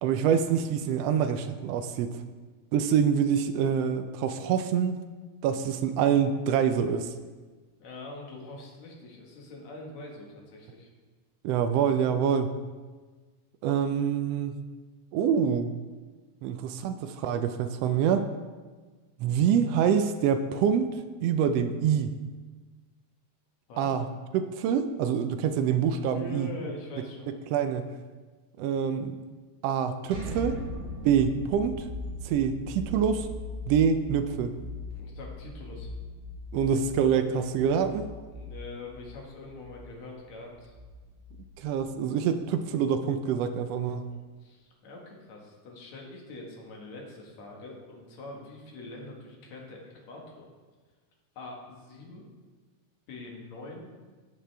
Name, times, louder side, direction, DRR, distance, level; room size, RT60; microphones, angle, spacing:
voice 1, 0.0-2.1 2.7-5.0 5.4-7.1 11.4-12.5 13.6-14.5 15.1-15.7 16.4-18.3 19.2-20.9 21.2-22.1 23.8-24.1 24.3-26.5 27.5-27.9 28.6-29.1 29.6-30.6 31.0-31.9 32.2-33.3 33.7-34.5 36.5-38.1 41.6-44.1, right 7 dB, 85° right, 8 dB, 1.4 m, -26 dB
voice 2, 7.8-10.9 23.7-23.9 26.1-27.3 34.9-35.9 38.3-40.8 42.1-42.2 44.1-50.5 51.4-52.3 53.1-53.9, left 2 dB, 65° left, -1 dB, 2.8 m, -43 dB
sound 1, 30.1-41.9, left 1 dB, 40° right, 1.3 m, -39 dB
14.0 x 7.4 x 3.4 m, 1.4 s
omnidirectional pair, 3.4 m